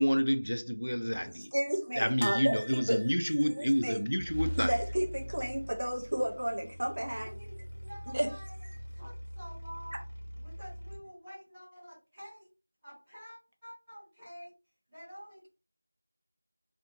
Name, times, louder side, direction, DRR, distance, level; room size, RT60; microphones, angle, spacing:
voice 1, 0.0-1.5 2.0-4.8, equal, 90° left, 0.4 m, -29 dB
voice 2, 1.5-3.0 3.4-4.0 4.6-7.3 8.1-8.3, equal, 40° right, 0.6 m, -32 dB
sound 1, 2.2-5.3 5.5-5.7 6.0-6.1 7.3-7.8 8.4-8.5, left 1 dB, 30° left, 0.5 m, -44 dB
sound 2, 4.2-11.0, equal, 50° left, 1.2 m, -41 dB
voice 3, 7.0-7.6 7.8-8.5 8.9-10.0 10.3-12.5 12.8-14.5 14.9-15.5, equal, 5° right, 0.8 m, -49 dB
2.8 x 2.5 x 2.6 m
figure-of-eight pair, 175°, 0 cm